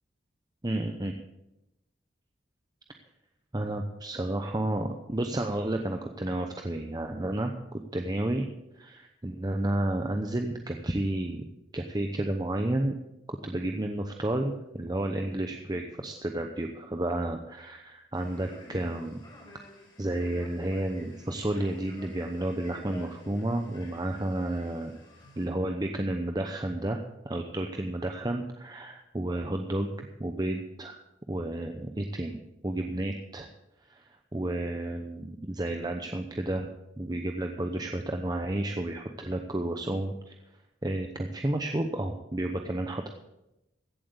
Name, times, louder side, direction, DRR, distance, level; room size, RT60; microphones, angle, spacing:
voice 1, 0.6-1.1 3.5-7.5 7.9-8.4 8.8-11.4 11.7-12.9 13.3-19.2 20.0-24.9 25.4-31.0 31.3-32.4 32.6-33.5 33.9-34.0 34.3-36.7 37.0-40.3 40.8-43.1, right 1 dB, 20° right, 4 dB, 0.8 m, -31 dB
Male speech man speaking, 18.1-25.4, left 1 dB, 25° left, 4.4 m, -50 dB
16.0 x 7.8 x 6.8 m, 0.92 s
head